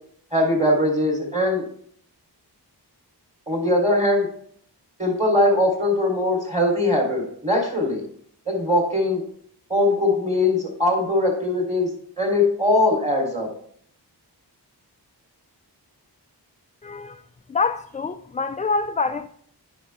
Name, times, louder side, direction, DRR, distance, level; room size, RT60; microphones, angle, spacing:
voice 1, 0.3-1.6 3.5-4.3 5.0-8.0 8.5-9.2 9.7-13.5, left 1 dB, 15° right, 3.5 m, -21 dB
voice 2, 16.8-17.2 17.5-19.3, left 4 dB, 20° left, 0.3 m, -26 dB
9.2 x 5.6 x 3.5 m
wide cardioid pair, 45°, 42 cm